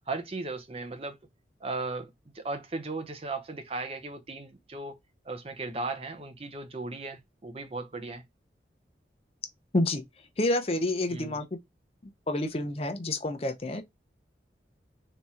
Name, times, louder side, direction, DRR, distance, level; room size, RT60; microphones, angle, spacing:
voice 1, 0.1-1.2 1.6-5.0 5.2-8.2 11.1-11.4, right 3 dB, 30° right, 0.6 m, -36 dB
voice 2, 9.7-10.0 10.4-11.6 12.3-13.8, left 2 dB, 35° left, 0.6 m, -28 dB
3.6 x 2.9 x 4.3 m
head